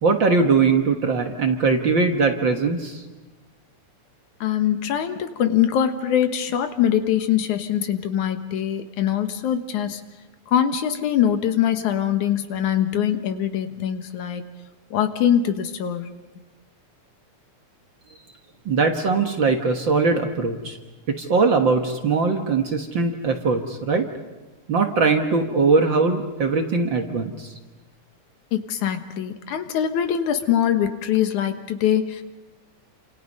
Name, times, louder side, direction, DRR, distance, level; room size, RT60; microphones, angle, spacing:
voice 1, 0.0-3.0 18.7-20.8 21.1-24.1 24.7-27.5, right 4 dB, 50° right, 4 dB, 1.7 m, -21 dB
voice 2, 4.4-10.0 10.5-14.5 14.9-16.1 28.5-32.2, left 9 dB, 80° left, 8 dB, 2.8 m, -23 dB
29.5 x 27.0 x 5.5 m, 1.2 s
omnidirectional pair, 3.4 m